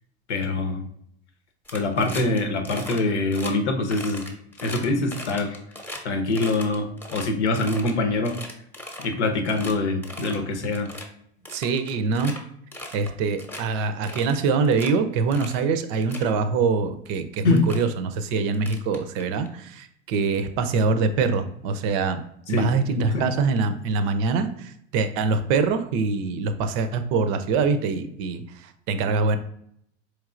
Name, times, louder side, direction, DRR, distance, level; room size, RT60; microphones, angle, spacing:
voice 1, 0.3-0.8 1.7-4.2 4.6-5.6 6.0-8.4 9.0-10.9 17.4-17.7 22.5-22.7 23.0-23.3, left 2 dB, 80° left, 5 dB, 0.8 m, -24 dB
sound 1, 1.6-2.4 2.6-3.0 3.3-3.5 3.9-6.0 6.3-7.9 8.2-9.1 9.4-9.7 10.0-10.4 10.7-11.0 11.4-12.4 12.7-13.1 13.4-13.6 14.0-14.9 15.3-15.6 15.9-16.3 17.1-17.2 17.5-17.8 18.5-19.5, left 1 dB, 5° left, 0.8 m, -38 dB
voice 2, 11.5-12.4 12.9-22.2 22.5-29.4, right 4 dB, 50° right, 10 dB, 0.6 m, -24 dB
4.4 x 3.2 x 2.5 m, 0.70 s
hypercardioid pair, 85°, 34 cm